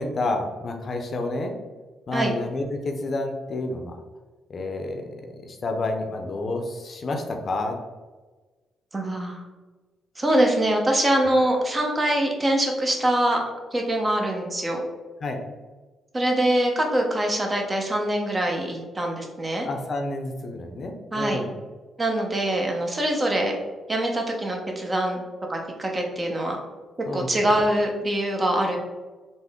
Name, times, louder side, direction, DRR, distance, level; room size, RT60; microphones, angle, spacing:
voice 1, 0.0-1.5 2.1-4.0 4.5-7.7 15.2-15.4 19.6-21.5 27.0-27.3, left 2 dB, 55° left, 3 dB, 0.5 m, -29 dB
voice 2, 8.9-9.4 10.2-13.4 13.7-14.8 16.1-19.7 21.1-21.4 22.0-23.5 23.9-25.2 25.5-26.6 27.1-28.8, right 1 dB, 30° right, 1 dB, 0.8 m, -24 dB
3.6 x 2.1 x 3.5 m, 1.3 s
supercardioid pair, 60°, 0 cm